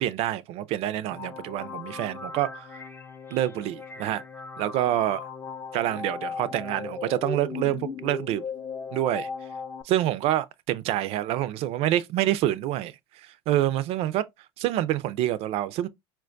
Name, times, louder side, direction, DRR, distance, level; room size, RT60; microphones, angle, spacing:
voice 1, 0.0-2.8 3.3-4.2 4.6-5.3 5.7-8.4 8.9-9.3 9.8-14.2 14.6-15.9, right 13 dB, 50° right, 0.4 m, -27 dB
sound 1, 1.1-9.8, left 5 dB, 15° left, 0.4 m, -37 dB
4.3 x 2.2 x 2.5 m
hypercardioid pair, 90°, 13 cm